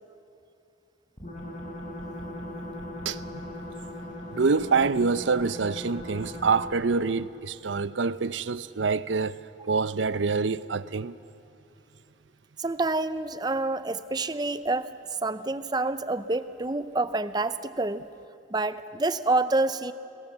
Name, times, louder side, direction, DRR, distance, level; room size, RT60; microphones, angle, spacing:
sound 1, 1.2-6.9, left 1 dB, 35° left, 6.1 m, -39 dB
voice 1, 4.3-11.2, right 4 dB, 80° right, 0.6 m, -26 dB
voice 2, 12.6-14.9 15.2-18.1 18.5-19.9, right 2 dB, 20° right, 0.6 m, -27 dB
29.0 x 20.0 x 7.4 m
head